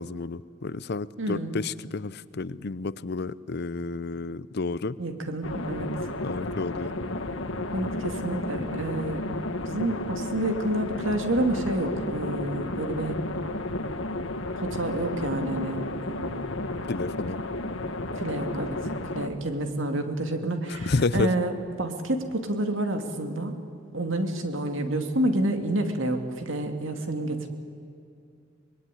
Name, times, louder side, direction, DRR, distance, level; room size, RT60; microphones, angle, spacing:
voice 1, 0.0-5.0 6.2-6.9 16.9-17.4 20.7-21.3, left 3 dB, 55° left, 18 dB, 0.6 m, -30 dB
voice 2, 1.2-1.5 5.0-5.9 7.7-9.4 9.6-13.2 14.6-16.5 18.2-23.5 23.9-27.5, right 1 dB, 75° right, 6 dB, 2.4 m, -29 dB
sound 1, 5.4-19.3, left 2 dB, 80° left, 1.7 m, -32 dB
24.5 x 21.5 x 9.9 m, 2.5 s
head